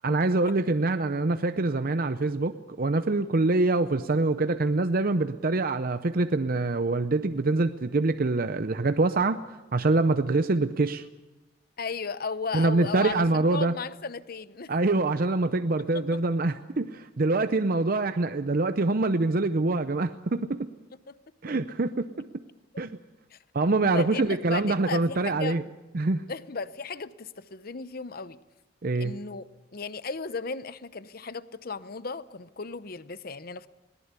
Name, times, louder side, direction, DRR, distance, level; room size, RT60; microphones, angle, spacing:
voice 1, 0.0-9.4 9.7-11.0 12.5-13.7 14.7-20.6 21.4-22.1 22.8-22.9 23.5-25.6 25.9-26.2 28.8-29.1, right 2 dB, 50° right, 0.7 m, -25 dB
voice 2, 11.8-14.7 21.1-21.2 21.5-21.6 23.3-23.4 23.8-25.7 26.3-28.4 29.0-29.4 29.7-33.7, left 4 dB, 50° left, 0.8 m, -35 dB
21.0 x 18.0 x 8.2 m
head